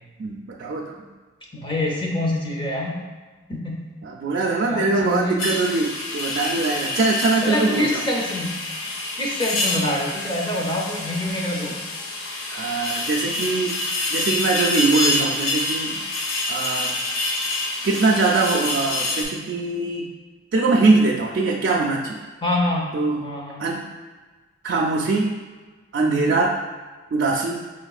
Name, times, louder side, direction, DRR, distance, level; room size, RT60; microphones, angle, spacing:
voice 1, 0.2-1.1 4.0-8.0 12.5-13.8 14.1-16.0 16.5-16.9 17.8-20.1 20.5-22.2 22.9-23.2 23.6-23.8 24.6-25.4 25.9-26.6 27.1-27.6, right 3 dB, 55° right, -3 dB, 0.4 m, -22 dB
voice 2, 1.5-3.0 3.5-3.9 4.4-5.8 7.4-8.6 9.2-11.8 22.4-22.9 23.2-23.6, left 1 dB, 25° left, -2 dB, 0.6 m, -26 dB
sound 1, 5.4-19.2, left 2 dB, 80° left, 0.6 m, -27 dB
5.0 x 3.1 x 2.3 m, 1.3 s
head